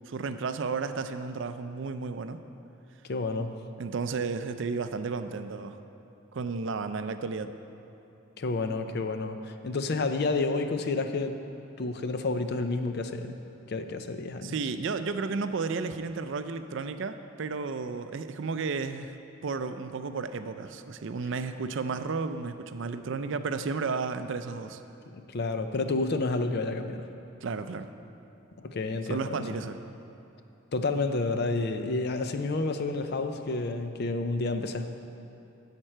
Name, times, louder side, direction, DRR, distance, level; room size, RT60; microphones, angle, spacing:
voice 1, 0.1-2.4 3.8-5.8 6.3-7.6 14.4-19.1 19.4-24.8 27.4-27.9 29.1-29.8, right 4 dB, 60° right, 10 dB, 0.4 m, -33 dB
voice 2, 3.1-3.5 8.4-11.4 11.8-13.4 13.7-14.5 25.3-27.1 28.6-29.4 30.7-34.9, left 3 dB, 50° left, 8 dB, 0.5 m, -30 dB
11.0 x 7.4 x 4.4 m, 2.8 s
head